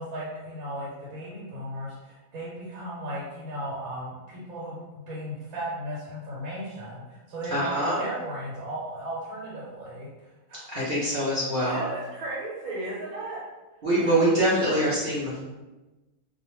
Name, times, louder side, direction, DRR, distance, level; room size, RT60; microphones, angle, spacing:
voice 1, 0.0-10.1 10.5-11.2 11.6-13.4 14.0-14.1, right 1 dB, 85° right, -7 dB, 1.2 m, -36 dB
voice 2, 7.5-8.0 10.7-11.8 13.8-15.4, right 1 dB, 45° right, -8 dB, 0.7 m, -24 dB
2.4 x 2.2 x 3.0 m, 1.1 s
omnidirectional pair, 1.5 m